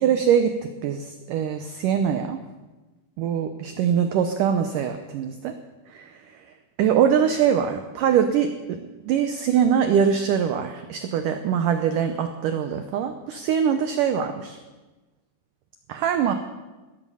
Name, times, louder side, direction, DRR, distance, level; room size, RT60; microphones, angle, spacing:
voice 1, 0.0-0.5 0.8-2.4 3.2-5.5 5.9-6.1 6.8-8.5 8.8-14.6 15.9-16.3, right 8 dB, 90° right, 8 dB, 1.8 m, -23 dB
18.0 x 13.5 x 5.6 m, 1.2 s
omnidirectional pair, 4.9 m